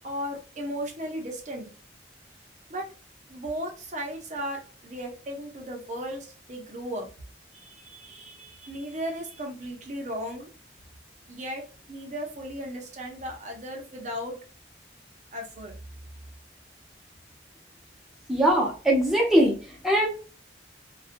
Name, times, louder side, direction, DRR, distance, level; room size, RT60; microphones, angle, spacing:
voice 1, 0.0-1.7 2.7-2.9 3.3-7.1 7.5-10.5 11.3-11.6 11.9-14.4 15.3-15.7, equal, 40° right, 2 dB, 0.7 m, -36 dB
voice 2, 18.3-20.1, right 1 dB, ahead, -3 dB, 0.7 m, -22 dB
2.6 x 2.3 x 2.5 m, 0.36 s
head